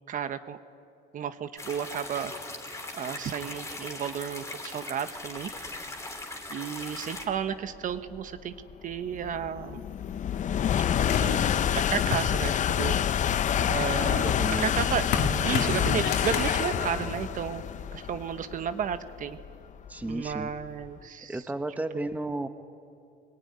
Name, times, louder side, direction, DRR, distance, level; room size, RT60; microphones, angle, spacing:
voice 1, 0.1-0.6 1.1-2.3 2.9-5.5 6.5-8.5 8.8-9.8 11.2-11.4 11.7-13.0 13.7-14.3 14.6-15.1 15.4-17.6 17.9-19.4 20.1-21.4 21.9-22.1, right 8 dB, 50° right, 10 dB, 1.0 m, -33 dB
sound 1, 1.6-7.3, left 2 dB, 15° left, 3.3 m, -40 dB
sound 2, 7.5-20.9, left 9 dB, 45° left, 0.7 m, -28 dB
sound 3, 11.1-12.9 13.4-18.0, left 5 dB, 75° left, 2.4 m, -33 dB
voice 2, 14.1-14.9 19.9-20.5 21.3-22.5, right 2 dB, 10° right, 8 dB, 1.2 m, -33 dB
22.5 x 18.5 x 9.7 m, 2.5 s
cardioid pair, 110°, 17 cm